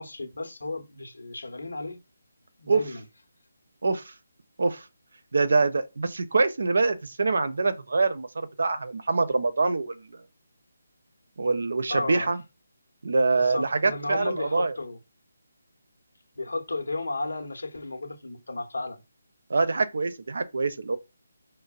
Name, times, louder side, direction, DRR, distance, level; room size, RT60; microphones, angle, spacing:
voice 1, 0.0-2.0 2.6-3.0 11.9-12.3 13.4-15.0 16.4-19.0, left 2 dB, 75° left, 1.0 m, -33 dB
voice 2, 3.8-4.1 4.6-4.8 5.3-10.2 11.4-12.4 13.0-14.7 19.5-21.0, right 3 dB, 65° right, 0.6 m, -25 dB
5.2 x 2.1 x 2.4 m
figure-of-eight pair, 155°, 0 cm